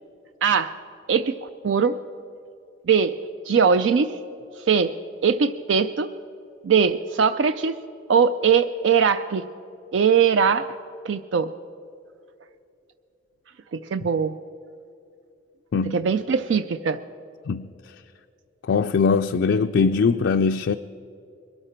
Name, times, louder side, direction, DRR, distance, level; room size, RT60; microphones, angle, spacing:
voice 1, 0.4-0.7 1.1-2.0 2.9-3.1 3.5-4.1 4.7-4.9 5.2-6.1 6.6-7.8 8.1-9.4 9.9-10.7 11.0-11.5 13.7-14.4 15.9-17.0, right 6 dB, 75° right, 0.4 m, -21 dB
voice 2, 15.7-16.0 17.5-18.0 18.6-20.8, left 5 dB, 65° left, 0.3 m, -21 dB
22.0 x 12.5 x 4.4 m
head